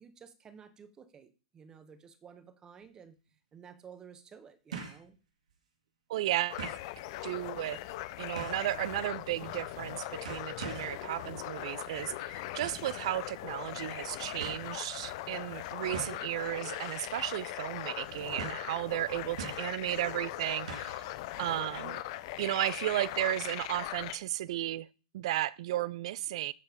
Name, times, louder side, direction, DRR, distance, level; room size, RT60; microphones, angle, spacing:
voice 1, 0.0-3.2 3.5-5.2, right 7 dB, 20° right, 1.2 m, -53 dB
sound 1, 2.8-2.9 4.7-5.1 5.5-5.6 6.6-6.9 8.3-8.7 9.7-9.9 10.2-11.0 12.6-12.9 13.9-14.0 14.4-14.6 15.9-16.3 16.8-17.0 17.3-17.4 18.4-18.7 19.4-19.8 20.7-21.0 21.3-21.4, right 5 dB, 85° right, 1.9 m, -43 dB
voice 2, 6.1-6.8 7.2-7.8 8.2-21.0 21.4-22.0 22.4-24.9 25.1-26.5, right 14 dB, 60° right, 0.4 m, -34 dB
sound 2, 6.5-24.2, left 15 dB, 50° left, 0.7 m, -40 dB
8.3 x 4.5 x 5.1 m
hypercardioid pair, 135°, 4 cm